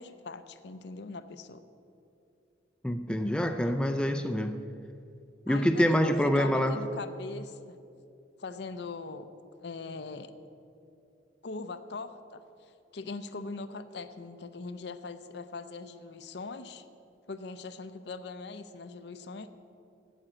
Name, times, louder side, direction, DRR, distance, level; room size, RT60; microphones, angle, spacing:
voice 1, 0.0-1.6 5.5-7.8 8.4-9.3 9.6-10.3 11.4-12.4 12.9-16.9 17.3-19.5, left 3 dB, 60° left, 11 dB, 0.6 m, -41 dB
voice 2, 2.8-4.6 5.5-6.8, equal, 5° left, 6 dB, 0.4 m, -26 dB
9.1 x 8.9 x 7.5 m, 2.6 s
head